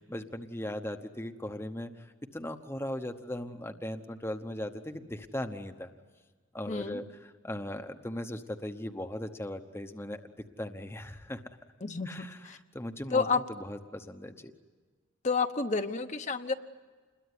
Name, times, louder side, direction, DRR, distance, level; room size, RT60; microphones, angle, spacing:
voice 1, 0.0-5.9 6.5-10.3 10.6-11.4 12.0-14.5, left 1 dB, 10° left, 6 dB, 1.0 m, -38 dB
voice 2, 6.7-7.0 11.8-12.6 13.1-13.4 15.2-16.5, left 4 dB, 35° left, 7 dB, 1.0 m, -30 dB
28.0 x 21.5 x 9.6 m, 1.4 s
head